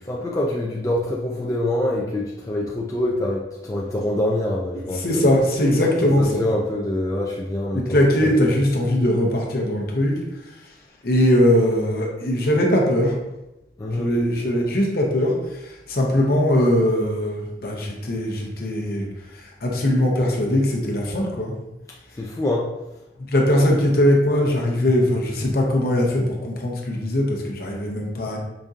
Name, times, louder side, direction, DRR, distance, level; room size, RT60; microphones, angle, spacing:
voice 1, 0.1-5.2 6.2-7.9 8.2-8.5 13.8-14.1 22.2-22.7, left 1 dB, 20° left, -4 dB, 0.3 m, -25 dB
voice 2, 4.9-6.4 7.7-10.2 11.0-13.1 14.0-19.1 19.6-21.5 23.3-28.4, left 1 dB, 55° left, -1 dB, 0.7 m, -20 dB
5.0 x 2.7 x 2.4 m, 0.95 s
head